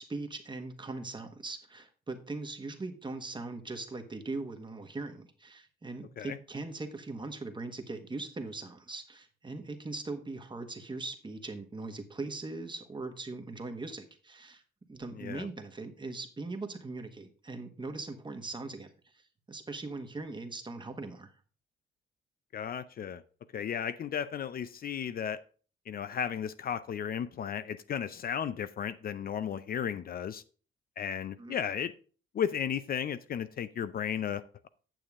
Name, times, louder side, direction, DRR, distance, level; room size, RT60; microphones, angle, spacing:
voice 1, 0.0-14.6 14.9-21.3 31.4-31.6, right 3 dB, 25° right, 1.4 m, -40 dB
voice 2, 15.1-15.5 22.5-23.2 23.5-25.4 25.9-30.4 31.0-31.9 32.3-34.7, left 8 dB, 50° left, 0.5 m, -34 dB
9.0 x 6.8 x 3.6 m
cardioid pair, 90°, 20 cm